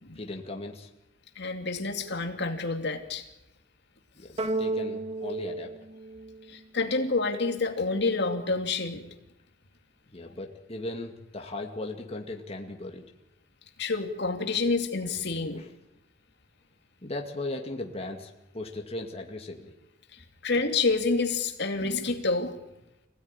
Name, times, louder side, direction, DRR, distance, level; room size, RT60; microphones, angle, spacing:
voice 1, 0.1-0.9 4.2-5.7 10.1-13.0 15.5-15.7 17.0-19.7, left 2 dB, 30° left, 2 dB, 2.3 m, -37 dB
voice 2, 1.4-3.2 6.5-9.0 13.8-15.6 20.1-22.6, left 3 dB, 60° left, 5 dB, 2.5 m, -28 dB
sound 1, 4.4-7.0, right 2 dB, 30° right, 1.8 m, -33 dB
26.0 x 16.5 x 9.9 m, 0.93 s
head